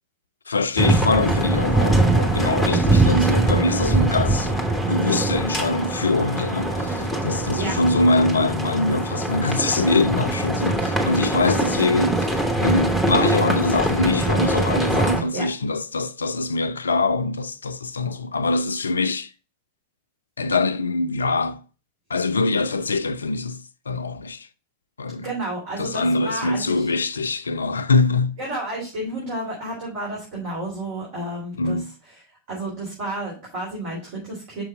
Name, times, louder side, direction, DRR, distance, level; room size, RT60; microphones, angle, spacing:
voice 1, 0.5-4.5 4.9-19.3 20.4-21.6 22.1-23.6 23.9-24.5 25.0-25.3 25.8-28.3 31.6-31.9, left 3 dB, 75° left, 0.4 m, -23 dB
sound 1, 0.8-15.2, right 2 dB, ahead, 1.2 m, -22 dB
sound 2, 1.5-7.5, right 1 dB, 85° right, 1.3 m, -39 dB
voice 2, 25.2-26.9 28.4-31.8 32.5-34.6, right 1 dB, 50° right, 3.2 m, -31 dB
6.1 x 5.4 x 3.6 m
figure-of-eight pair, 90°, 0 cm